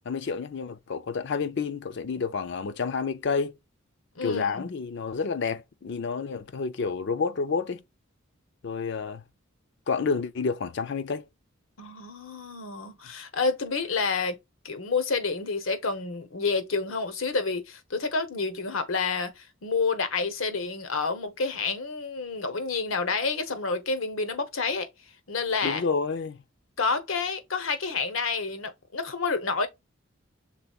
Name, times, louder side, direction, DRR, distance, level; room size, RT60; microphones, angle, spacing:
voice 1, 0.0-3.5 4.2-7.8 8.6-9.2 9.9-11.3 25.6-26.4, left 5 dB, 60° left, 0.5 m, -29 dB
voice 2, 4.2-4.7 11.8-14.4 14.6-24.9 25.3-25.8 26.8-29.7, left 4 dB, 85° left, 0.9 m, -29 dB
5.8 x 3.6 x 2.4 m
head